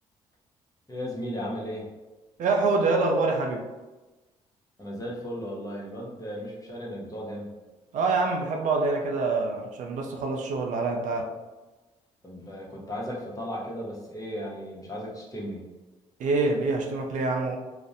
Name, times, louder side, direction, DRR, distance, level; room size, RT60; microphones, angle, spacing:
voice 1, 0.9-1.9 4.8-7.5 12.2-15.8, equal, 25° left, -3 dB, 0.8 m, -35 dB
voice 2, 2.4-3.7 7.9-11.3 16.2-17.6, right 3 dB, 60° right, 2 dB, 0.4 m, -25 dB
2.4 x 2.0 x 2.6 m, 1.2 s
hypercardioid pair, 50°, 15 cm